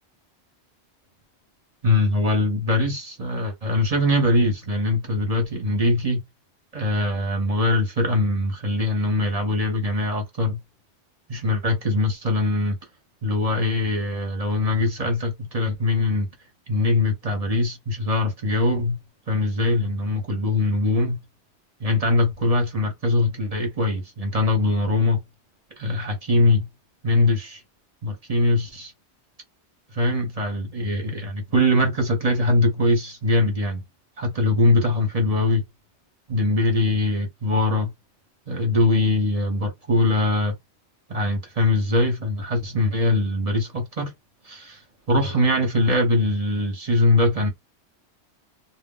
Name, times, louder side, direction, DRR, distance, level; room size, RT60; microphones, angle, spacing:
voice 1, 1.8-6.2 6.7-10.6 11.3-12.8 13.2-16.3 16.7-19.0 19.3-21.2 21.8-25.2 25.8-26.7 27.0-27.6 28.0-28.9 29.9-33.8 34.2-35.6 36.3-37.9 38.5-40.5 41.1-44.1 44.4-44.8 45.1-47.5, left 2 dB, 40° right, 0.8 m, -22 dB
2.2 x 2.0 x 3.6 m
omnidirectional pair, 1.1 m